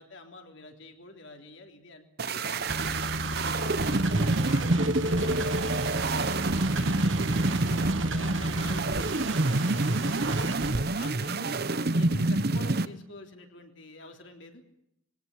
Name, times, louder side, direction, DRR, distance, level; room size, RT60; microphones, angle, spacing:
voice 1, 0.0-3.4 4.3-7.4 7.8-10.5 10.9-14.6, left 2 dB, 60° left, 4 dB, 3.5 m, -47 dB
sound 1, 2.2-12.9, right 2 dB, 50° right, 0.9 m, -27 dB
sound 2, 2.5-10.8, right 2 dB, 65° right, 2.2 m, -33 dB
voice 2, 3.5-4.6 11.2-11.8, left 1 dB, 40° left, 4 dB, 3.1 m, -47 dB
23.0 x 17.5 x 8.5 m, 0.77 s
head